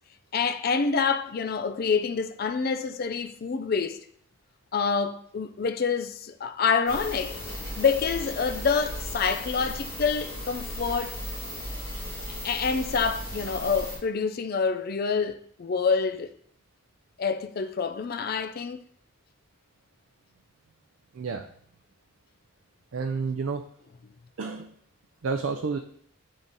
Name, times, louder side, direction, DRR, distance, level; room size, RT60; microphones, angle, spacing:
voice 1, 0.3-4.0 4.7-11.2 12.3-16.3 17.2-18.8, left 5 dB, 45° left, 0.4 m, -27 dB
sound 1, 6.9-14.0, left 1 dB, 15° left, 2.0 m, -36 dB
voice 2, 21.1-21.5 22.9-23.6 24.4-24.7 25.2-25.8, right 4 dB, 75° right, 0.4 m, -30 dB
7.2 x 3.8 x 4.0 m
head